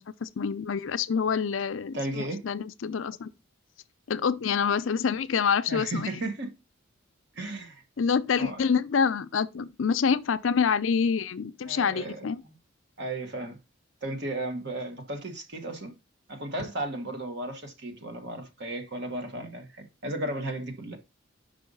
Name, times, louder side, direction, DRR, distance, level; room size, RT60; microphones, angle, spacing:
voice 1, 0.0-3.3 4.1-6.1 8.0-12.4, left 6 dB, 75° left, 0.5 m, -27 dB
voice 2, 1.9-2.4 5.7-6.5 7.3-7.8 8.4-8.7 11.6-12.5 13.0-13.6 14.0-15.9 16.3-21.0, right 1 dB, 55° right, 1.3 m, -35 dB
5.6 x 5.2 x 5.3 m
head